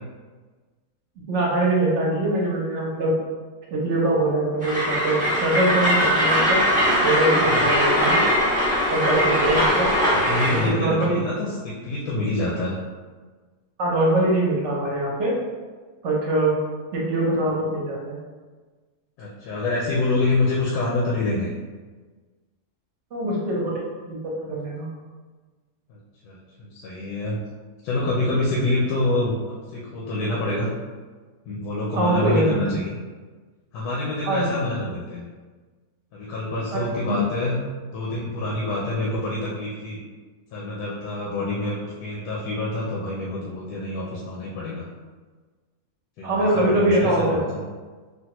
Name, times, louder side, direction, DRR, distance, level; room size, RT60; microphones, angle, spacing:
voice 1, 1.3-3.1 3.7-6.6 7.0-8.2 8.9-9.9 10.5-11.2 13.8-15.3 16.0-16.5 16.9-18.2 23.1-23.8 24.1-24.9 31.9-32.7 34.2-34.5 36.7-36.8 37.1-37.2 46.2-47.4, right 1 dB, 55° right, -4 dB, 0.9 m, -23 dB
Train, 4.6-10.7, equal, 5° right, 0.8 m, -20 dB
voice 2, 10.2-12.8 19.2-21.5 25.9-27.4 27.8-30.7 31.4-33.0 33.7-35.2 36.1-37.6 37.9-40.0 40.5-44.8 46.2-47.7, left 2 dB, 90° left, -5 dB, 1.2 m, -26 dB
3.5 x 2.3 x 2.9 m, 1.4 s
omnidirectional pair, 1.7 m